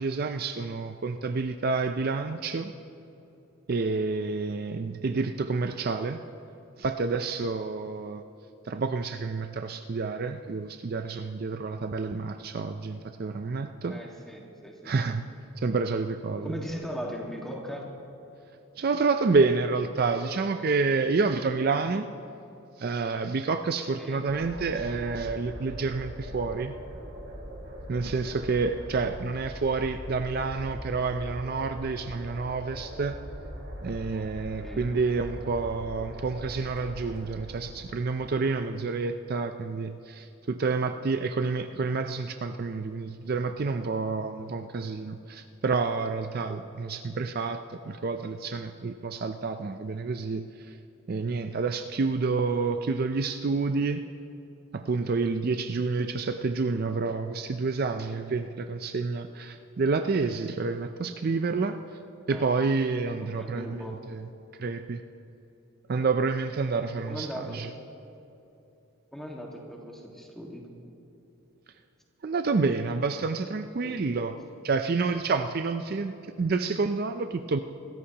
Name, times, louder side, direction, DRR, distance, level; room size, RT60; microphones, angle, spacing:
voice 1, 0.0-2.7 3.7-6.2 6.8-8.2 8.7-14.0 14.8-15.3 15.6-16.5 18.8-22.1 22.8-26.7 27.9-33.1 33.8-50.5 51.1-54.0 54.7-61.8 62.3-64.2 64.6-65.0 65.9-67.7 72.2-74.3 74.6-76.1 76.4-77.6, right 4 dB, 45° right, 8 dB, 0.4 m, -29 dB
voice 2, 13.9-14.9 16.4-17.9 24.0-24.2 34.6-34.9 62.3-62.5 63.1-64.0 67.1-67.6 69.1-70.6 73.8-74.0, equal, ahead, -1 dB, 1.6 m, -39 dB
sound 1, 24.3-38.5, equal, 60° right, 3.4 m, -41 dB
26.0 x 14.0 x 2.9 m, 2.8 s
head